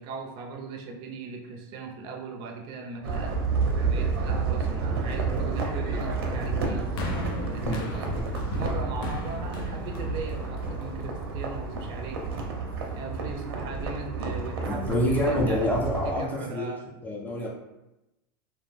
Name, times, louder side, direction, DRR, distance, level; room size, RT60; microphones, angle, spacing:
voice 1, 0.0-3.4 3.8-6.9 7.4-8.2 8.5-12.2 12.9-16.9, right 4 dB, 40° right, 2 dB, 0.5 m, -39 dB
sound 1, 3.0-16.2, right 4 dB, 90° right, 0.6 m, -30 dB
sound 2, 7.0-11.3 12.1-12.2, left 2 dB, 70° left, 0.6 m, -37 dB
voice 2, 7.6-8.2 12.9-13.0 14.6-16.7 17.0-17.5, left 1 dB, 15° left, -2 dB, 0.5 m, -27 dB
2.4 x 2.1 x 3.1 m, 0.95 s
supercardioid pair, 140°, 12 cm